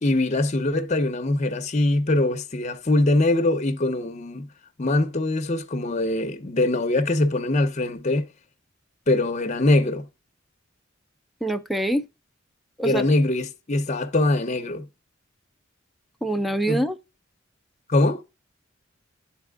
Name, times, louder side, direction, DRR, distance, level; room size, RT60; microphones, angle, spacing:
voice 1, 0.0-4.5 4.8-8.3 9.1-10.1 12.8-14.8 16.7-16.8 17.9-18.2, left 2 dB, 35° left, 0.7 m, -22 dB
voice 2, 11.4-12.1 12.8-13.1 16.2-17.0, right 1 dB, ahead, 0.4 m, -24 dB
11.0 x 4.1 x 2.3 m
head